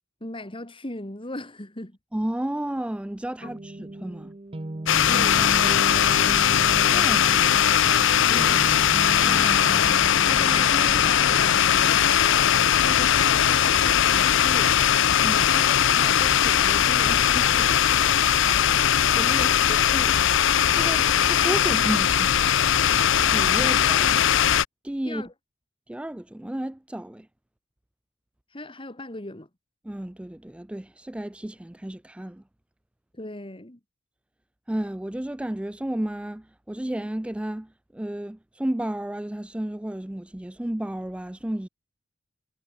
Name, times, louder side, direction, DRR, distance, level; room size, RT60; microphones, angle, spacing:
voice 1, 0.2-2.0 3.4-3.5 5.1-6.2 8.3-8.8 9.2-12.5 12.8-14.8 15.5-17.8 19.2-20.2 23.6-23.7 24.0-24.1 25.0-25.3 28.5-29.5 33.1-33.8, left 1 dB, 25° left, 2.7 m, -38 dB
voice 2, 2.1-4.3 6.9-7.7 15.2-15.5 19.1-19.5 20.7-22.6 23.3-24.2 24.8-25.2 25.9-27.3 29.9-32.4 34.7-41.7, right 1 dB, 5° right, 0.3 m, -32 dB
sound 1, 3.4-13.0, right 1 dB, 25° right, 0.7 m, -36 dB
sound 2, 4.9-24.6, left 9 dB, 65° left, 0.6 m, -20 dB
head